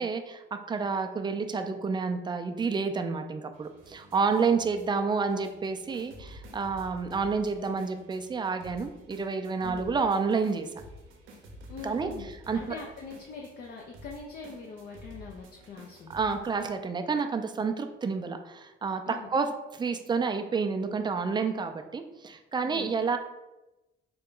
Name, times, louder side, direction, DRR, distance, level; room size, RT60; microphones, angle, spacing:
voice 1, 0.0-10.7 11.8-12.1 12.5-12.6 16.1-19.0 19.3-19.5 19.7-23.2, right 5 dB, 20° right, 7 dB, 0.4 m, -29 dB
sound 1, 3.5-16.8, equal, 85° right, 0.6 m, -50 dB
voice 2, 9.6-9.9 11.7-16.1 19.0-19.3 22.6-23.0, left 4 dB, 50° left, 0 dB, 0.5 m, -43 dB
3.8 x 2.2 x 3.7 m, 1.0 s
cardioid pair, 90°, 20 cm